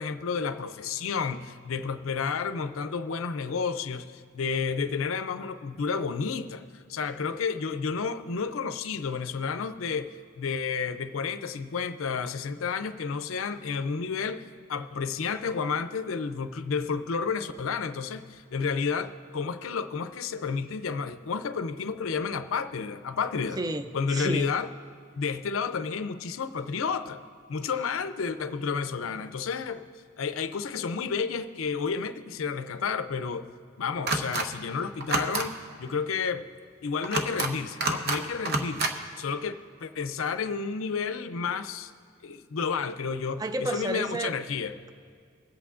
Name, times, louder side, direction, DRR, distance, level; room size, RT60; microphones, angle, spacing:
voice 1, 0.0-23.6 23.9-24.7 25.2-27.2 27.5-29.9 30.2-33.5 33.8-36.4 36.8-41.9 42.2-44.7, left 5 dB, 90° left, 10 dB, 0.5 m, -31 dB
voice 2, 23.6-24.5 43.4-44.3, right 2 dB, 20° right, 9 dB, 0.4 m, -31 dB
es-stamp, 34.1-34.5 35.0-35.5 37.0-37.5 37.8-38.2 38.5-38.9, right 3 dB, 50° right, 0.8 m, -27 dB
24.5 x 8.3 x 2.5 m, 2.2 s
head